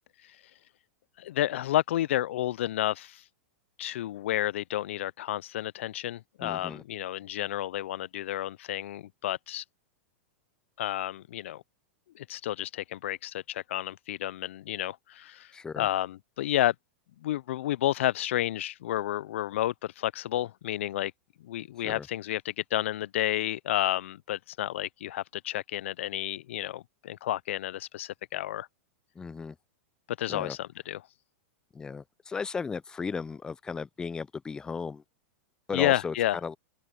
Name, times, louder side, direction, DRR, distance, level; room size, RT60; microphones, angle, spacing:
voice 1, 1.2-3.2 3.8-9.6 10.8-11.6 12.2-16.7 17.2-21.1 21.4-28.7 30.2-31.0 35.7-36.4, left 13 dB, 75° left, 0.3 m, -31 dB
voice 2, 6.4-6.8 15.5-15.9 21.8-22.1 29.2-29.6 30.3-30.6 31.7-35.0 35.7-36.1 36.4-36.6, left 5 dB, 10° left, 0.4 m, -35 dB
supercardioid pair, 140°, 7 cm